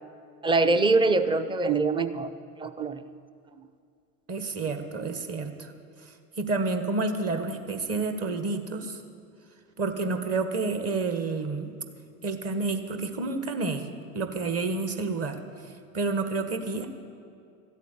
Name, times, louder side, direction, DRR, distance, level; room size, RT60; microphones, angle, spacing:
voice 1, 0.4-2.3 2.6-3.0 3.6-3.7, right 3 dB, 10° right, 11 dB, 0.6 m, -24 dB
voice 2, 4.3-5.7 6.0-9.0 9.8-11.7 12.2-13.9 14.1-16.9, right 3 dB, 30° right, 7 dB, 1.5 m, -30 dB
14.0 x 8.3 x 8.5 m, 2.4 s
hypercardioid pair, 85°, 46 cm